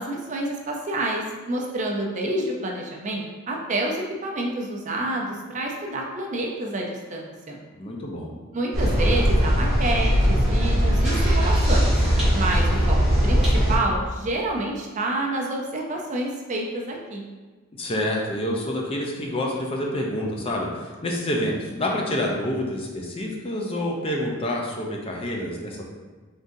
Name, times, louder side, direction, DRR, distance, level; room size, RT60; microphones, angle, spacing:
voice 1, 0.0-7.6 8.5-11.9 12.3-13.0 13.2-17.2, right 2 dB, 35° right, 0 dB, 0.5 m, -28 dB
voice 2, 7.8-8.3 17.8-25.8, left 1 dB, 25° left, -1 dB, 0.5 m, -28 dB
sound 1, 8.7-13.8, equal, ahead, 1.3 m, -20 dB
3.8 x 3.6 x 2.6 m, 1.4 s
head